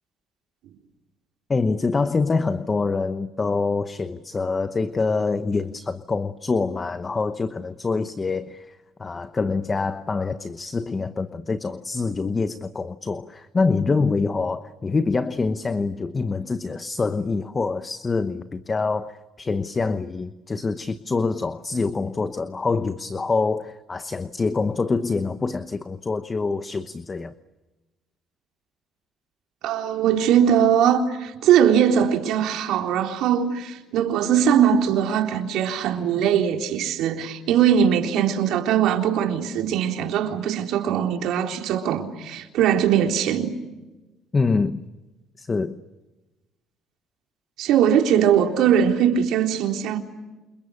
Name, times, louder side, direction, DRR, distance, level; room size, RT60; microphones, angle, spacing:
voice 1, 1.5-27.3 44.3-44.8 45.4-45.8, left 4 dB, 25° left, 1.0 m, -25 dB
voice 2, 29.6-43.5 47.6-50.0, right 9 dB, 75° right, 3.7 m, -21 dB
29.0 x 28.0 x 6.6 m
cardioid pair, 110°, 0 cm